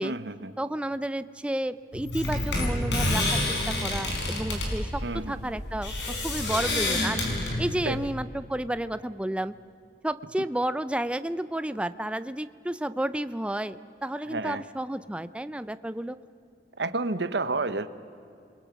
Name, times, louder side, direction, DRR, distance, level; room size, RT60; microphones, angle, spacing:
voice 1, 0.0-0.5 5.0-5.5 7.9-8.0 14.3-14.6 16.8-17.9, right 3 dB, 70° right, 12 dB, 1.0 m, -30 dB
voice 2, 0.6-7.2 7.6-9.5 10.0-16.2, right 1 dB, 5° right, 13 dB, 0.5 m, -31 dB
sound 1, 1.9-8.0, left 1 dB, 80° left, 5.2 m, -28 dB
28.5 x 22.0 x 6.0 m, 2.6 s
head